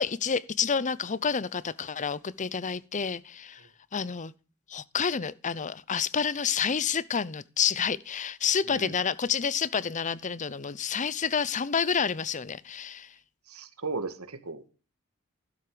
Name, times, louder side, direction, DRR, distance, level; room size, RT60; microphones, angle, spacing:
voice 1, 0.0-3.6 3.9-4.3 4.7-13.1, left 6 dB, 35° left, 0.7 m, -29 dB
voice 2, 13.5-14.7, right 3 dB, 85° right, 2.0 m, -36 dB
16.0 x 11.5 x 6.8 m
head